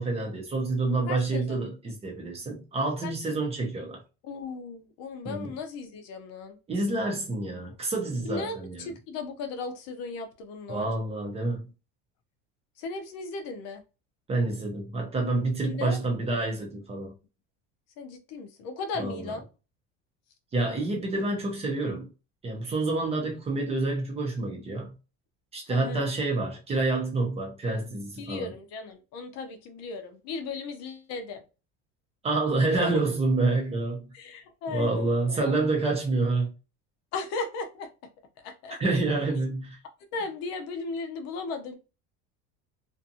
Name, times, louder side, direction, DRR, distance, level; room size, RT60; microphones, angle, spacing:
voice 1, 0.0-4.0 5.3-5.5 6.7-8.9 10.7-11.6 14.3-17.1 19.0-19.2 20.5-22.1 22.4-24.9 25.5-28.5 32.2-34.1 34.7-36.5 38.8-39.8, right 2 dB, 20° right, 0.6 m, -28 dB
voice 2, 1.1-1.7 3.0-3.4 4.2-6.6 8.2-10.9 12.8-13.8 15.6-16.0 18.0-19.4 25.7-26.1 28.2-31.4 32.8-32.9 34.1-35.6 37.1-37.9 38.4-39.0 40.1-41.8, left 4 dB, 55° left, 0.6 m, -36 dB
2.6 x 2.4 x 2.7 m
cardioid pair, 165°, 32 cm